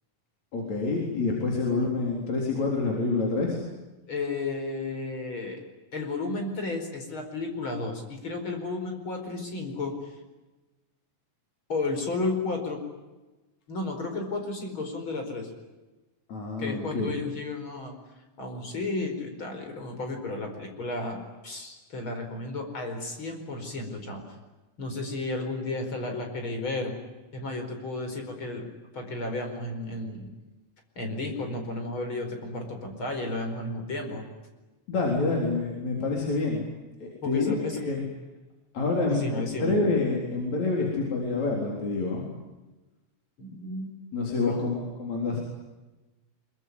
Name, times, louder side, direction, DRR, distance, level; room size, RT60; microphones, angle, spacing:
voice 1, 0.5-3.6 16.3-17.1 34.9-36.6 37.0-38.0 38.7-42.3 44.1-45.4, left 3 dB, 65° left, -1 dB, 5.2 m, -27 dB
voice 2, 4.1-5.6 5.9-10.1 11.7-12.8 13.7-15.5 16.6-17.9 18.4-24.4 24.8-26.9 27.3-30.3 31.0-34.3 37.2-37.8 39.1-39.8 43.4-43.9 44.5-44.7, left 2 dB, 40° left, 4 dB, 5.4 m, -33 dB
24.5 x 23.5 x 9.6 m, 1.1 s
omnidirectional pair, 3.4 m